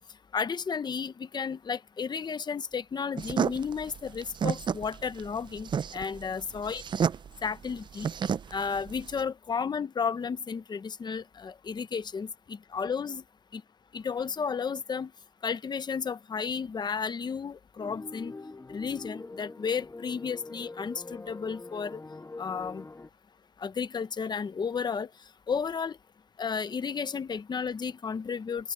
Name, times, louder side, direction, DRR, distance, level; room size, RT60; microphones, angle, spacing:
voice 1, 0.3-6.8 7.4-8.1 8.5-13.2 13.5-13.6 13.9-15.1 15.4-18.3 18.7-22.0 22.4-22.8 23.6-25.1 25.5-25.9 26.4-28.7, left 6 dB, 65° left, 0.7 m, -33 dB
sound 1, 3.2-9.2, right 7 dB, 75° right, 0.4 m, -31 dB
sound 2, 17.8-23.1, left 3 dB, 30° left, 1.5 m, -44 dB
open air
wide cardioid pair, 80°, 8 cm